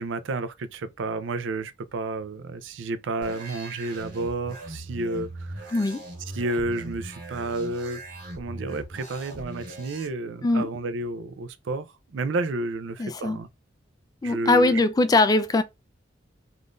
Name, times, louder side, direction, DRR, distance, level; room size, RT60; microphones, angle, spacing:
voice 1, 0.0-5.7 6.3-8.0 8.3-11.9 12.1-13.5 14.2-14.8, right 2 dB, 70° right, 0.5 m, -31 dB
sound 1, 3.2-10.1, right 1 dB, 55° right, 1.7 m, -40 dB
voice 2, 5.7-6.0 10.4-10.7 13.0-13.4 14.2-15.6, left 2 dB, 20° left, 0.3 m, -21 dB
3.7 x 2.5 x 2.4 m
head